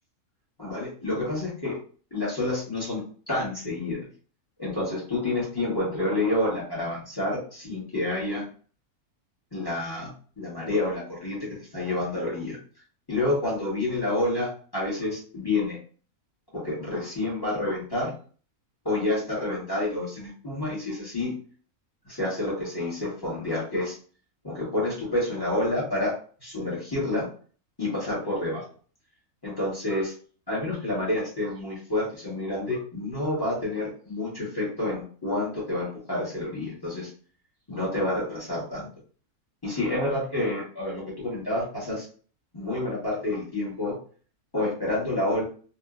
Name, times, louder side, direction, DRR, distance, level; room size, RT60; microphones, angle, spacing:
voice 1, 0.6-1.8 2.1-4.0 4.6-8.4 9.5-12.6 13.1-15.8 16.5-18.1 18.8-21.3 22.0-24.0 24.4-26.1 26.4-27.3 27.8-28.6 29.4-30.1 30.5-37.1 37.7-38.9 39.6-42.1 42.5-44.0 44.5-45.4, left 2 dB, 20° left, -7 dB, 0.9 m, -29 dB
2.9 x 2.1 x 2.3 m, 0.42 s
omnidirectional pair, 1.5 m